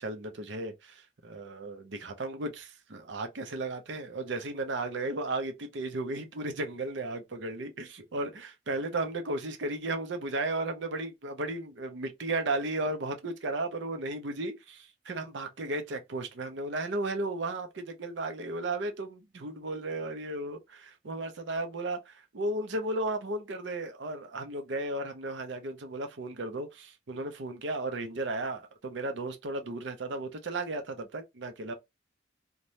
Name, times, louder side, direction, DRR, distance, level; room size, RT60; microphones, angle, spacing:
voice 1, 0.0-31.7, right 2 dB, 65° right, 0.6 m, -35 dB
2.6 x 2.2 x 3.0 m
head